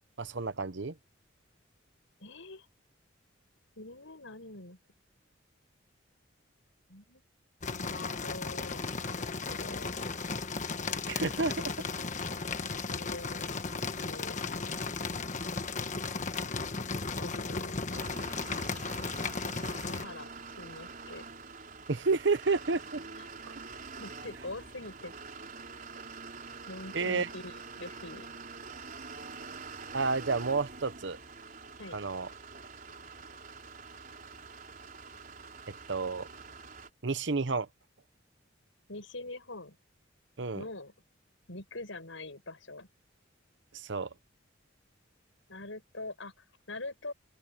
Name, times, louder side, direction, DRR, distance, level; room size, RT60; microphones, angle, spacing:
voice 1, 0.2-0.9 11.1-11.6 21.9-23.0 23.5-23.6 26.9-27.3 29.9-31.2 31.9-32.3 35.9-36.3 37.0-37.7 40.4-40.6 43.7-44.1, right 4 dB, 65° right, 0.9 m, -30 dB
voice 2, 2.2-2.7 3.8-4.8 6.9-7.2 7.7-10.0 11.1-11.7 12.9-13.6 13.9-14.9 17.0-18.1 19.8-20.3 20.6-21.2 23.2-23.3 24.0-25.1 26.7-28.3 31.8-32.0 38.9-39.8 40.5-40.9 41.5-42.9 45.5-47.1, left 2 dB, 75° left, 6.3 m, -44 dB
sound 1, 7.6-20.1, left 4 dB, 40° left, 1.3 m, -35 dB
sound 2, 17.9-36.9, right 4 dB, 45° right, 4.8 m, -46 dB
open air
head